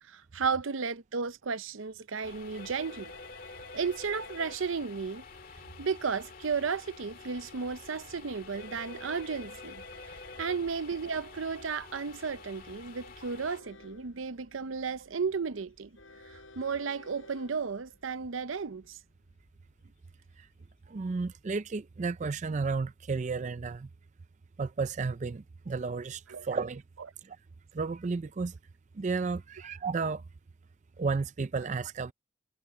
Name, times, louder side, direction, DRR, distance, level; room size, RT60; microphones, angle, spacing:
voice 1, 0.1-3.1 3.7-5.2 5.8-16.0 16.3-19.0 26.3-26.5, right 5 dB, 80° right, 0.7 m, -34 dB
sound 1, 2.2-13.6, left 3 dB, 45° left, 2.2 m, -48 dB
Train, 9.0-22.0, left 2 dB, 80° left, 4.6 m, -59 dB
voice 2, 20.9-23.9 24.6-26.8 27.2-27.4 27.7-28.6 28.9-30.2 31.0-32.1, right 4 dB, 35° right, 0.4 m, -33 dB
head